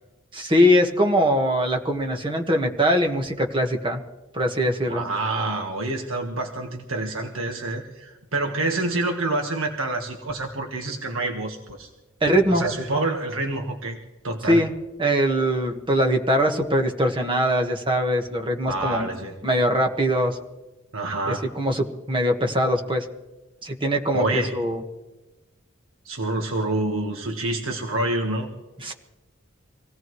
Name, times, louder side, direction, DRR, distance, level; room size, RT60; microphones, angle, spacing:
voice 1, 0.3-4.0 4.3-5.0 12.2-12.6 14.5-14.7 15.0-19.1 19.4-20.4 21.3-23.0 23.6-24.8 28.8-28.9, equal, 25° right, 3 dB, 1.6 m, -22 dB
voice 2, 4.9-11.9 12.5-14.0 14.2-14.6 18.7-19.3 20.9-21.4 24.1-24.5 26.0-28.5, right 2 dB, 85° right, 3 dB, 1.6 m, -27 dB
25.5 x 17.5 x 3.2 m, 1.1 s
head